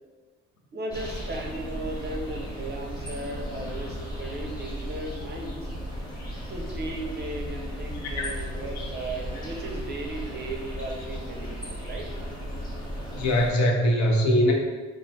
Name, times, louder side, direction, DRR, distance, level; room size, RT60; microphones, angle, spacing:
voice 1, 0.7-5.7 6.5-12.1, right 2 dB, 35° right, 1 dB, 0.5 m, -36 dB
sound 1, 0.9-13.5, equal, 15° left, 0.9 m, -35 dB
voice 2, 13.1-14.5, equal, 70° left, 0 dB, 0.6 m, -21 dB
3.2 x 2.1 x 2.7 m, 1.3 s
cardioid pair, 90°, 30 cm